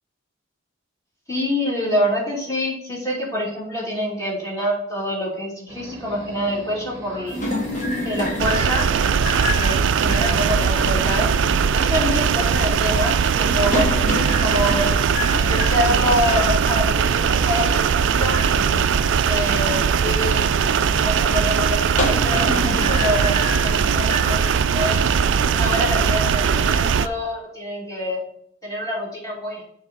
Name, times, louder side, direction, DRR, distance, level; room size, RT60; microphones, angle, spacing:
voice 1, 1.3-7.4 8.0-8.9 9.5-11.2 11.7-14.0 14.4-15.0 15.4-20.4 20.9-25.0 25.5-28.2 28.6-29.6, left 1 dB, 15° left, -5 dB, 2.7 m, -26 dB
sound 1, 5.7-12.8, right 1 dB, 15° right, 1.2 m, -39 dB
sound 2, 7.3-24.5, left 1 dB, 40° left, 1.5 m, -30 dB
sound 3, 8.4-27.1, right 6 dB, 60° right, 0.3 m, -20 dB
6.7 x 4.0 x 6.4 m, 0.69 s
head